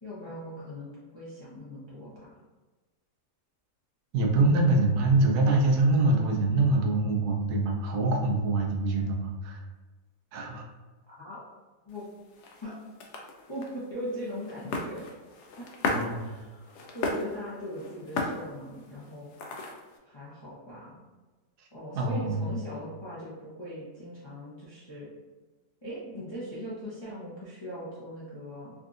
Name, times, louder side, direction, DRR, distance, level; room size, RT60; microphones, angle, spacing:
voice 1, 0.0-2.3 4.6-4.7 11.1-11.4 11.9-12.0 12.6-12.7 13.5-15.1 15.6-15.7 16.2-19.3 20.0-21.0 21.7-25.1 25.8-28.7, equal, 35° left, -9 dB, 0.4 m, -40 dB
voice 2, 4.1-9.6 10.3-10.6 15.9-16.3 21.6-21.7 21.9-22.4, right 2 dB, 75° right, 1 dB, 1.1 m, -24 dB
sound 1, 11.9-20.0, left 2 dB, 80° left, 0.6 m, -36 dB
3.6 x 2.5 x 2.4 m, 1.2 s
omnidirectional pair, 1.7 m